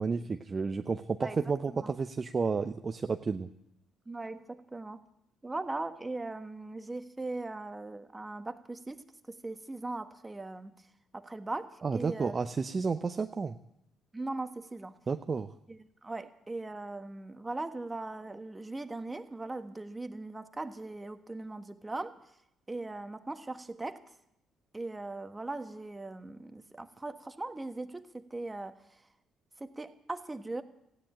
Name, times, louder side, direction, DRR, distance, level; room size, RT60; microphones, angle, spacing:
voice 1, 0.0-3.5 11.8-13.6 15.1-15.5, right 4 dB, 40° right, 7 dB, 0.7 m, -31 dB
voice 2, 4.1-5.0 5.4-10.7 11.1-12.4 14.1-14.9 15.7-22.2 22.7-24.0 24.7-28.8 29.6-30.6, right 2 dB, 20° right, 8 dB, 1.4 m, -39 dB
15.0 x 10.0 x 8.8 m, 0.79 s
hypercardioid pair, 55°, 0 cm